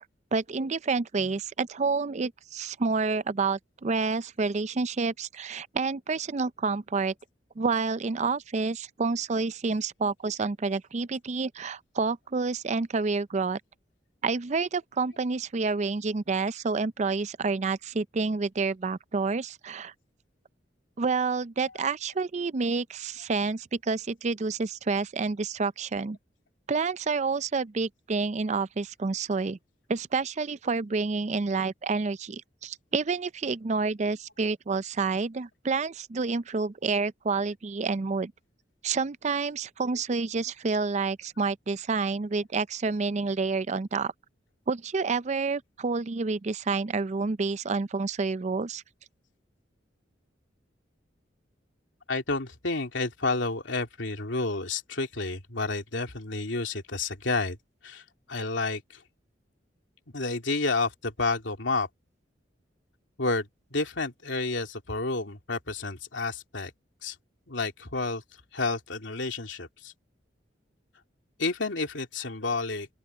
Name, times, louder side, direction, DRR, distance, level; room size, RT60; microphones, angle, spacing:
voice 1, 0.3-7.1 7.6-13.6 14.2-19.9 21.0-26.2 26.7-29.6 29.9-38.3 38.8-44.1 44.7-48.8, right 4 dB, 40° right, 0.5 m, -29 dB
voice 2, 52.1-57.6 57.8-58.0 58.3-58.8 60.1-61.9 63.2-66.7 67.0-67.1 67.5-68.2 68.5-69.9 71.4-72.9, left 3 dB, 90° left, 3.0 m, -30 dB
open air
head